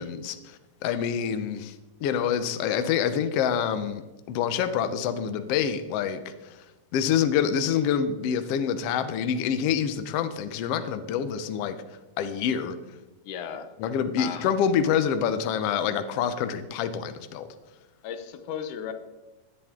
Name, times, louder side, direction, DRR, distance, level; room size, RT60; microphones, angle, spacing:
voice 1, 0.0-1.7 2.0-6.6 6.9-11.8 12.2-12.8 13.8-17.5, left 8 dB, 70° left, 10 dB, 1.6 m, -26 dB
voice 2, 13.2-13.8 14.2-14.5 18.0-18.9, left 8 dB, 85° left, 8 dB, 2.4 m, -35 dB
17.5 x 10.5 x 3.7 m, 1.1 s
omnidirectional pair, 3.5 m